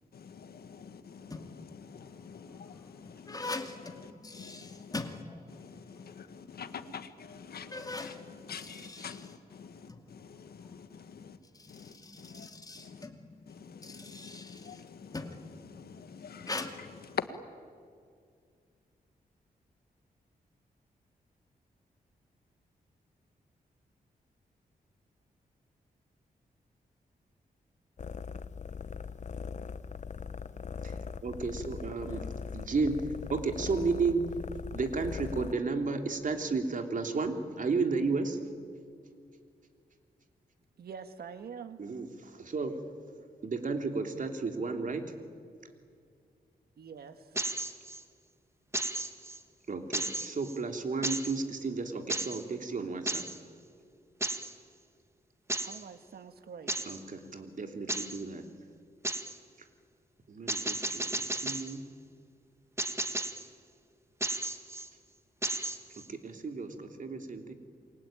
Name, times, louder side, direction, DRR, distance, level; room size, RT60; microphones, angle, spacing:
voice 1, 0.1-11.4 11.7-12.5 12.8-13.1 13.5-17.3, left 7 dB, 75° left, 10 dB, 1.7 m, -46 dB
sound 1, 1.1-1.7 2.4-5.8 6.1-6.2 6.9-7.0 7.5-10.1 11.3-15.5 16.4-16.7, left 2 dB, 25° left, 2.4 m, -42 dB
sound 2, 28.0-35.5, left 6 dB, 50° left, 1.0 m, -40 dB
voice 2, 31.2-32.2 32.5-34.3 34.7-38.4 41.8-42.8 43.4-45.1 49.7-53.2 56.9-58.4 60.3-61.8 66.0-67.5, right 4 dB, 55° right, 5 dB, 3.0 m, -33 dB
voice 3, 40.8-41.8 46.8-47.4 55.6-56.9, right 6 dB, 80° right, 9 dB, 1.8 m, -45 dB
sound 3, 47.4-48.0 48.7-49.4 49.9-50.6 51.0-51.4 52.1-52.4 53.1-53.4 54.2-54.5 55.5-55.8 56.7-57.0 57.9-58.2 59.0-59.4 60.5-61.7 62.8-63.5 64.2-64.9 65.4-66.1, right 2 dB, 15° right, 1.8 m, -34 dB
28.5 x 23.5 x 9.0 m, 2.3 s
cardioid pair, 90°, 16 cm